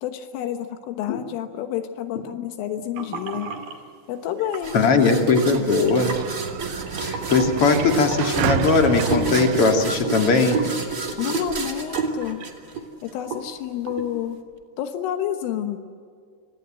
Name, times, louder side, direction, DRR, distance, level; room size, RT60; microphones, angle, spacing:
voice 1, 0.0-3.5 4.1-5.0 5.3-5.4 11.2-12.4 13.0-14.4 14.8-15.8, left 10 dB, 80° left, 7 dB, 3.8 m, -29 dB
sound 1, 3.0-3.8 4.4-4.8 5.3-12.8 13.1-13.5 13.9-14.1, right 4 dB, 50° right, 3.4 m, -31 dB
sound 2, 4.6-13.1, right 3 dB, 35° right, 1.3 m, -33 dB
voice 2, 4.7-6.1 7.0-10.6, left 4 dB, 40° left, 4 dB, 2.5 m, -19 dB
Sliding door, 5.0-10.6, right 11 dB, 75° right, 2.9 m, -30 dB
28.5 x 25.0 x 7.8 m, 2.1 s
omnidirectional pair, 5.7 m